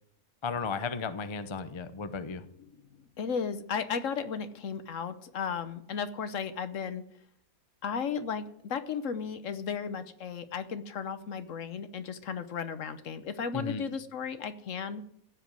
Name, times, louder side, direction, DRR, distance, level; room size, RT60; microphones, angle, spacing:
voice 1, 0.4-2.4 13.5-13.8, left 5 dB, 30° left, 11 dB, 0.6 m, -34 dB
voice 2, 3.2-7.0 7.8-15.0, left 6 dB, 65° left, 11 dB, 1.2 m, -35 dB
15.5 x 5.2 x 9.4 m, 0.70 s
omnidirectional pair, 1.5 m